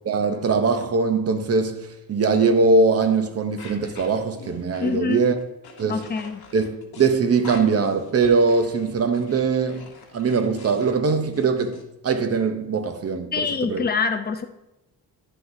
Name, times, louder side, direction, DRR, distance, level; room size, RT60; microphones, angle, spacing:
voice 1, 0.0-5.4 5.8-6.0 6.5-9.9 10.1-13.9, right 4 dB, 40° right, 0.6 m, -21 dB
sound 1, 3.6-11.8, left 4 dB, 70° left, 1.1 m, -44 dB
voice 2, 4.8-5.3 5.9-6.4 13.3-14.4, left 5 dB, 25° left, 0.4 m, -25 dB
9.9 x 6.0 x 2.6 m
wide cardioid pair, 165°, 38 cm